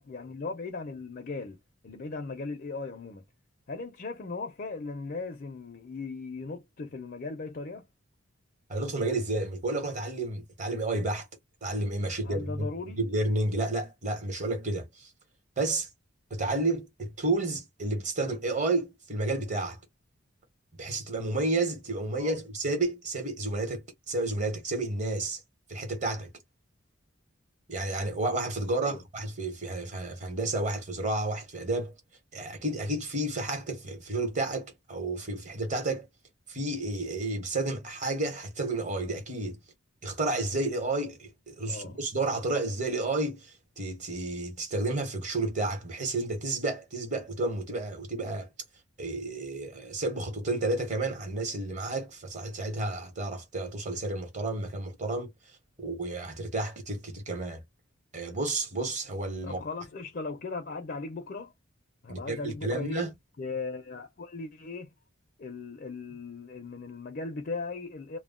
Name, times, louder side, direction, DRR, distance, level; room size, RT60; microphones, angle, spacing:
voice 1, 0.0-1.6 1.8-3.2 3.7-7.9 12.0-13.0 22.2-22.4 28.8-29.0 41.7-42.0 59.4-61.5 62.0-63.0 63.4-64.9 65.4-68.2, left 3 dB, 45° left, 0.5 m, -38 dB
voice 2, 8.7-11.3 11.6-12.7 13.0-15.1 15.6-15.9 16.3-19.8 20.8-25.4 25.7-26.3 27.7-31.9 32.3-36.1 36.5-39.6 40.0-48.5 49.0-55.3 55.8-57.6 58.1-59.6 62.1-63.1, right 2 dB, 35° right, 1.0 m, -31 dB
2.1 x 2.1 x 3.6 m
head